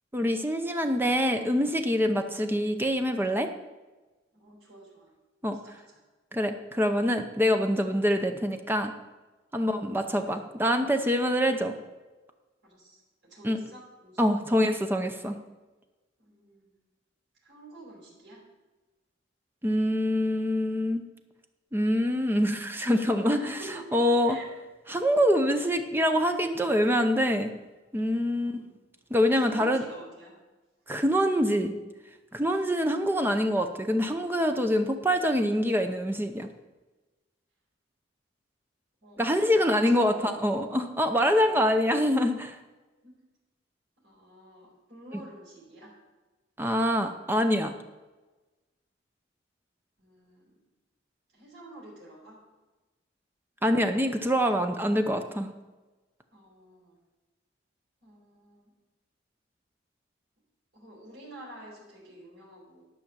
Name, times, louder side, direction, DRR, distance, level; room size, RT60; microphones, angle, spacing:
voice 1, 0.1-3.5 5.4-5.6 6.3-8.9 9.5-11.8 13.4-13.6 14.2-15.4 19.6-21.0 21.7-23.4 23.9-24.4 24.9-27.5 27.9-28.6 29.1-29.8 30.9-31.7 32.3-36.5 39.2-42.6 45.1-45.2 46.6-47.7 53.6-55.5, equal, 10° right, 6 dB, 0.7 m, -25 dB
voice 2, 4.3-5.1 5.6-6.0 9.5-9.8 12.6-13.0 13.3-14.4 16.2-16.7 17.4-18.4 23.3-24.0 24.2-24.5 28.4-28.7 29.4-30.4 32.3-32.4 39.0-39.2 39.6-40.4 43.0-43.1 44.0-45.9 50.0-50.6 51.3-52.4 56.3-57.0 58.0-58.7 60.7-62.8, right 1 dB, 65° right, -5 dB, 4.1 m, -48 dB
12.0 x 5.8 x 7.4 m, 1.2 s
head